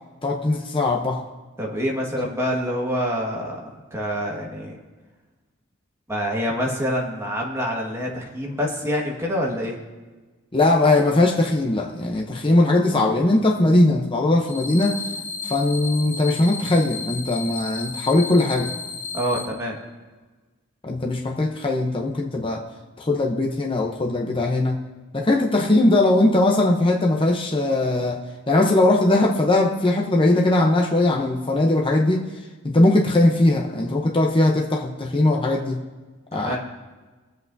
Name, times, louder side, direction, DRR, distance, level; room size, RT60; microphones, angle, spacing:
voice 1, 0.2-1.2 2.2-2.3 10.5-15.0 15.4-18.7 20.8-22.6 23.0-24.8 25.1-32.2 32.6-35.8 36.3-36.6, left 2 dB, 25° left, 1 dB, 0.7 m, -20 dB
voice 2, 1.6-3.6 3.9-4.8 6.1-9.8 19.1-19.8 36.3-36.6, equal, 15° right, -1 dB, 1.6 m, -26 dB
sound 1, 14.5-19.4, left 4 dB, 50° left, 2.5 m, -33 dB
23.0 x 7.9 x 2.7 m, 1.3 s
head